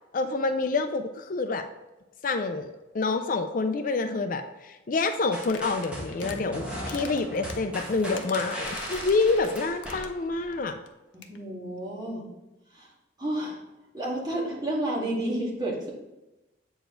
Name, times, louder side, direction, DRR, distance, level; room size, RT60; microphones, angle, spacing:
voice 1, 0.1-1.7 2.2-10.8, left 3 dB, 50° left, 8 dB, 0.4 m, -27 dB
sound 1, 5.3-10.6, equal, 5° right, 1.7 m, -37 dB
sound 2, 5.4-6.4 6.8-10.2 10.5-10.6 10.9-11.0 11.1-11.4, left 7 dB, 90° left, 0.7 m, -45 dB
voice 2, 11.1-12.3 12.7-12.9 13.2-13.6 13.9-15.9, right 1 dB, 25° right, -5 dB, 2.1 m, -31 dB
7.8 x 5.0 x 3.8 m, 1.0 s
head